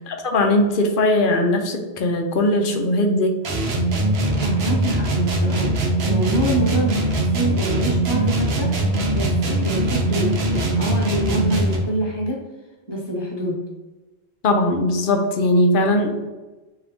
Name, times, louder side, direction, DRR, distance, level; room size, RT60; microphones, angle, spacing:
voice 1, 0.0-3.4 14.4-16.3, left 1 dB, 60° left, 4 dB, 0.7 m, -19 dB
sound 1, 3.4-11.9, right 1 dB, 70° right, 0.9 m, -21 dB
voice 2, 4.4-5.8 6.0-8.8 9.1-12.4 12.9-13.6, right 1 dB, 25° left, -4 dB, 1.1 m, -26 dB
3.8 x 2.8 x 3.4 m, 1.1 s
omnidirectional pair, 1.1 m